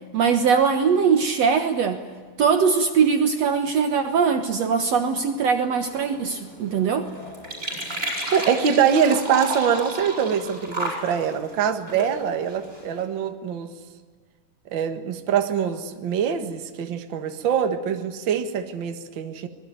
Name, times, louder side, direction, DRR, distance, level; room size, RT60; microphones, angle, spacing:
voice 1, 0.1-2.0 2.4-7.1, right 6 dB, 60° right, 6 dB, 2.1 m, -21 dB
sound 1, 5.8-13.0, right 1 dB, 20° right, 7.8 m, -33 dB
voice 2, 8.3-13.7 14.7-19.5, right 7 dB, 45° right, 6 dB, 1.8 m, -24 dB
25.5 x 21.0 x 9.4 m, 1.5 s
omnidirectional pair, 3.8 m